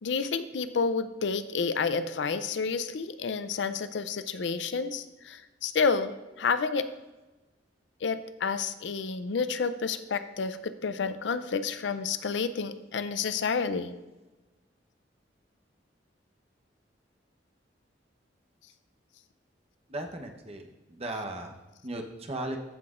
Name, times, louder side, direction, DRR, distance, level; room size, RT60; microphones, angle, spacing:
voice 1, 0.0-6.1 6.4-6.9 8.0-13.9, left 5 dB, 70° left, 12 dB, 0.5 m, -30 dB
voice 2, 19.9-22.6, right 1 dB, 35° right, 3 dB, 0.9 m, -37 dB
15.0 x 5.9 x 2.5 m, 1.1 s
head